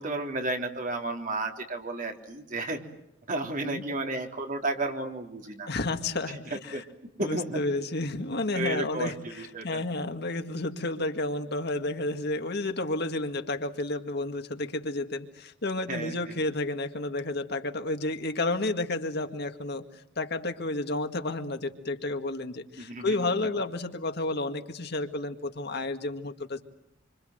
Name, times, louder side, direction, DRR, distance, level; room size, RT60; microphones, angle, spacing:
voice 1, 0.0-2.8 3.3-5.7 6.5-6.8 7.2-7.7 8.5-9.8 15.9-16.4 22.8-23.2, right 2 dB, 45° right, 3 dB, 3.6 m, -33 dB
voice 2, 5.7-6.8 7.2-26.6, left 2 dB, 60° left, 6 dB, 2.0 m, -31 dB
27.5 x 26.0 x 7.9 m, 0.78 s
head